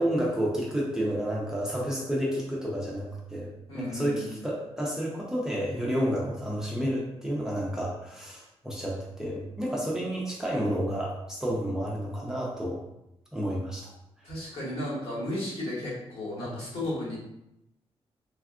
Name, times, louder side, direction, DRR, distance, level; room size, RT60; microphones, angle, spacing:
voice 1, 0.0-12.8 13.3-13.9 16.4-16.5, equal, 5° right, -5 dB, 0.5 m, -30 dB
voice 2, 3.7-4.4 14.2-17.2, left 1 dB, 60° left, -8 dB, 1.4 m, -34 dB
3.5 x 2.2 x 2.4 m, 0.84 s
wide cardioid pair, 120°, 11 cm